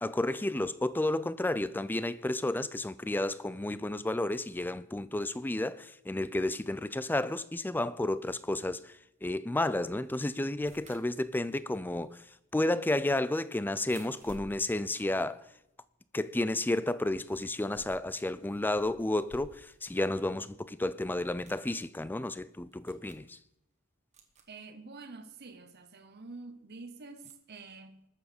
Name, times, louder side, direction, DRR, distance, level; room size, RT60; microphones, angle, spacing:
voice 1, 0.0-15.5 16.1-23.4, left 1 dB, 10° left, 0.4 m, -32 dB
sound 1, 10.6-16.1 16.4-20.0 20.3-20.4 21.2-21.7 22.4-22.5 22.7-23.3 24.1-24.6 26.0-26.1 27.2-27.3, right 2 dB, 35° right, 1.5 m, -56 dB
voice 2, 24.5-28.1, right 3 dB, 50° right, 0.9 m, -47 dB
20.0 x 7.1 x 5.2 m
head